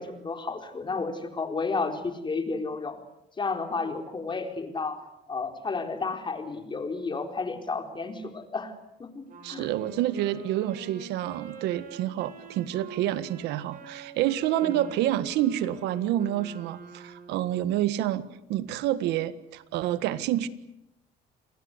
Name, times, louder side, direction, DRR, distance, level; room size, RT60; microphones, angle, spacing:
voice 1, 0.0-3.0 3.4-8.7 9.0-9.7 14.6-14.8, left 4 dB, 30° left, 5 dB, 4.3 m, -32 dB
Wind instrument woodwind instrument, 9.3-17.6, right 5 dB, 55° right, 7.5 m, -46 dB
voice 2, 9.4-20.5, right 13 dB, 90° right, 14 dB, 1.6 m, -28 dB
29.5 x 20.5 x 8.1 m, 0.83 s
cardioid pair, 110°, 17 cm